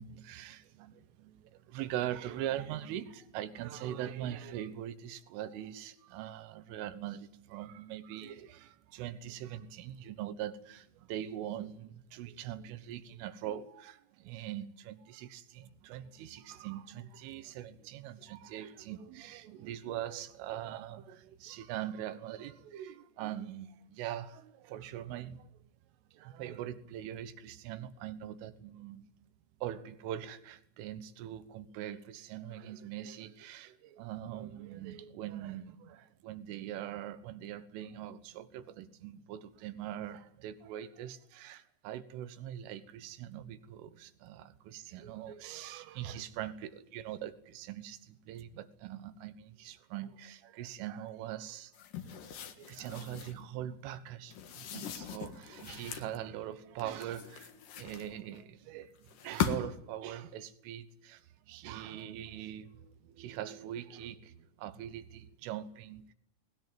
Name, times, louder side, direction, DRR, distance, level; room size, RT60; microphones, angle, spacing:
voice 1, 0.0-25.5 26.1-29.0 29.6-51.7 52.1-66.1, right 11 dB, 75° right, 3.6 m, -42 dB
sound 1, 51.7-53.4 54.3-56.2 56.8-58.4 59.1-59.9, left 8 dB, 60° left, 2.3 m, -39 dB
21.5 x 19.5 x 9.3 m
omnidirectional pair, 6.0 m